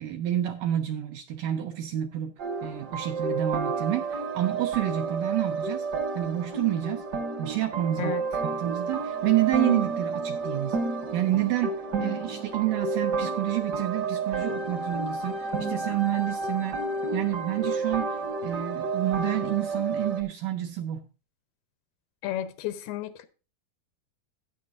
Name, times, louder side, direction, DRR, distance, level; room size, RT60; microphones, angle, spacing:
voice 1, 0.0-2.3 2.6-5.9 6.2-7.0 7.4-8.2 8.4-10.8 11.1-16.8 17.1-21.0, right 14 dB, 80° right, 1.9 m, -29 dB
sound 1, 2.4-20.2, right 3 dB, 60° right, 1.1 m, -31 dB
voice 2, 22.2-23.3, left 12 dB, 85° left, 2.7 m, -32 dB
13.0 x 9.3 x 2.5 m
omnidirectional pair, 4.4 m